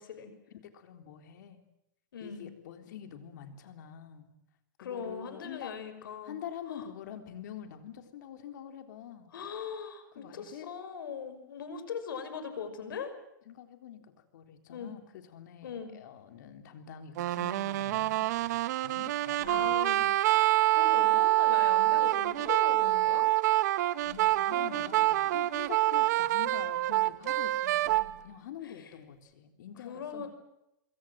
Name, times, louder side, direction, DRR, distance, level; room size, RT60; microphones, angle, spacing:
voice 1, 0.0-0.3 2.1-2.5 4.8-6.4 6.7-6.9 9.3-13.1 14.7-14.9 15.6-15.9 19.4-23.3 24.5-25.0 28.6-28.9 29.8-30.3, left 6 dB, 90° left, 9 dB, 6.1 m, -40 dB
voice 2, 0.5-1.6 2.2-4.3 4.8-5.8 6.2-9.3 10.2-10.7 13.5-20.1 24.0-30.3, left 9 dB, 60° left, 7 dB, 3.7 m, -46 dB
sound 1, 17.2-28.1, right 16 dB, 55° right, 0.9 m, -26 dB
26.0 x 23.5 x 7.7 m, 0.85 s
supercardioid pair, 160°, 11 cm